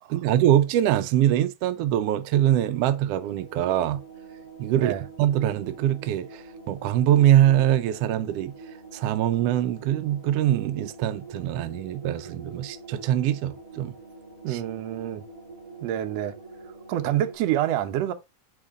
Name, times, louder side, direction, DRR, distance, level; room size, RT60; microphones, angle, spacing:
voice 1, 0.1-4.0 4.6-4.9 5.2-8.5 8.9-13.9 14.5-14.6, right 12 dB, 85° right, 1.4 m, -23 dB
sound 1, 1.9-17.3, right 3 dB, 10° right, 2.2 m, -45 dB
voice 2, 14.4-15.2 15.8-16.3 16.9-18.1, right 12 dB, 70° right, 1.8 m, -27 dB
9.1 x 3.9 x 3.6 m
omnidirectional pair, 3.4 m